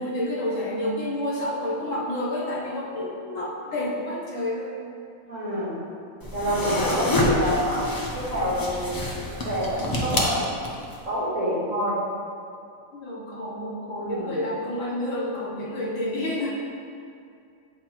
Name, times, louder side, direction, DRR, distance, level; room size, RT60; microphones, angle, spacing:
voice 1, 0.0-4.8 12.9-16.5, left 1 dB, 65° left, -4 dB, 1.3 m, -29 dB
voice 2, 5.2-5.8 6.3-8.9 9.4-10.7 11.0-12.0 14.0-14.4, equal, 65° right, -8 dB, 1.8 m, -27 dB
sound 1, 6.2-11.0, left 1 dB, 35° left, 0.3 m, -27 dB
7.8 x 4.4 x 3.0 m, 2.4 s
omnidirectional pair, 1.5 m